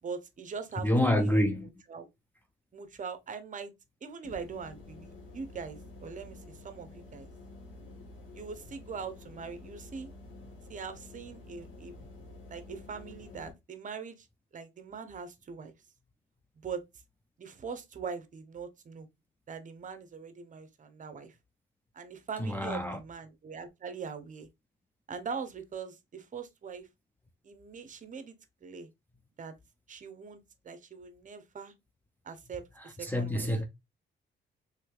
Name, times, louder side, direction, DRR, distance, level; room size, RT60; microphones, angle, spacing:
voice 1, 0.0-0.9 1.2-1.4 1.9-2.1 2.7-3.7 4.0-7.3 8.3-10.1 10.7-11.9 12.5-14.3 14.5-15.7 16.5-16.8 17.4-19.1 19.5-21.4 21.9-24.5 25.1-26.9 27.4-28.4 28.6-28.9 29.4-29.5 29.9-31.7 32.2-33.5, right 5 dB, 40° right, 0.7 m, -42 dB
voice 2, 0.8-1.7 22.4-23.0 33.1-33.7, left 1 dB, 10° left, 0.4 m, -27 dB
sound 1, 4.2-13.5, left 2 dB, 75° left, 1.3 m, -49 dB
3.2 x 3.1 x 2.3 m
cardioid pair, 90°, 20 cm